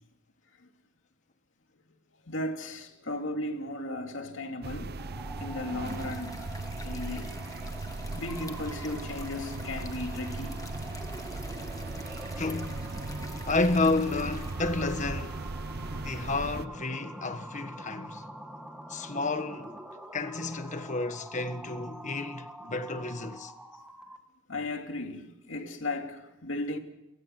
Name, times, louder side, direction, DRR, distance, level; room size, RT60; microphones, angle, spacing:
voice 1, 2.3-5.0 5.4-7.3 8.1-10.6 15.8-16.1 24.5-26.8, left 2 dB, 80° left, 2.7 m, -36 dB
sound 1, 4.6-16.7, right 3 dB, 55° right, 0.7 m, -38 dB
sound 2, 5.0-24.3, equal, 5° right, 1.6 m, -46 dB
snow thawing, 5.8-14.6, left 4 dB, 20° left, 1.4 m, -49 dB
voice 2, 12.4-12.8 13.4-15.5 15.9-18.2 18.9-19.7 20.1-23.5, left 3 dB, 40° left, 1.4 m, -31 dB
29.0 x 16.5 x 5.9 m
head